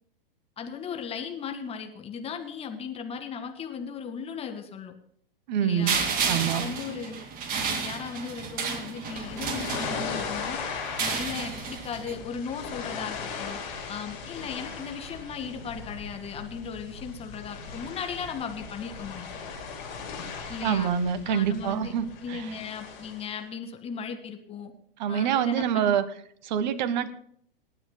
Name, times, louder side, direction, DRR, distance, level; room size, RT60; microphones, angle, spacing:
voice 1, 0.6-4.9 5.6-6.0 6.5-7.2 7.5-10.6 11.0-13.6 13.9-19.4 20.5-20.9 21.3-21.9 22.2-24.7 25.1-25.9, left 6 dB, 20° left, 6 dB, 1.9 m, -37 dB
voice 2, 5.5-5.9 6.3-6.6 20.6-22.5 25.0-26.0 26.4-27.1, right 8 dB, 50° right, 14 dB, 1.3 m, -26 dB
sound 1, 5.9-10.3 10.8-12.1, right 6 dB, 30° right, 2.3 m, -31 dB
sound 2, 9.0-23.3, left 5 dB, 55° left, 6.7 m, -38 dB
27.5 x 9.9 x 2.2 m, 0.66 s
figure-of-eight pair, 105°, 29 cm